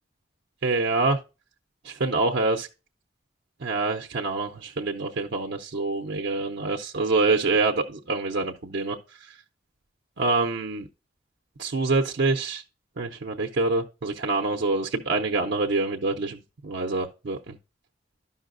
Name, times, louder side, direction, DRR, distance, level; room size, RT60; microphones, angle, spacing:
voice 1, 0.6-1.2 1.8-2.7 3.6-9.4 10.2-10.9 11.6-12.6 13.0-17.6, right 3 dB, 75° right, 0.6 m, -26 dB
12.0 x 5.5 x 2.5 m
head